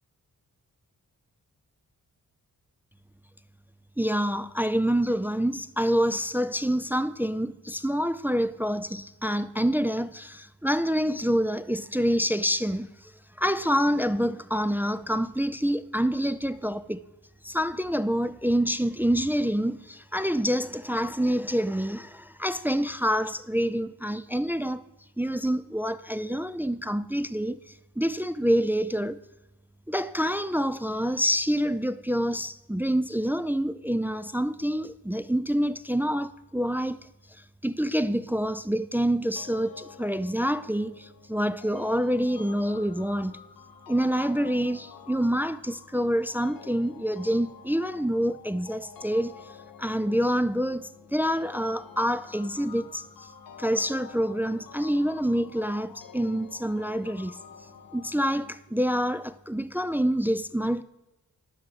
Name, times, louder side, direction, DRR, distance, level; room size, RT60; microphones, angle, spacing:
voice 1, 4.0-13.1 13.4-17.0 17.4-24.8 25.2-27.6 28.0-29.2 29.9-37.0 37.6-43.4 43.9-49.3 49.8-53.3 53.6-57.4 57.9-60.8, equal, 5° right, 0.4 m, -27 dB
sound 1, 39.4-58.6, left 7 dB, 75° left, 0.8 m, -48 dB
10.5 x 6.1 x 7.8 m
wide cardioid pair, 90°, 35 cm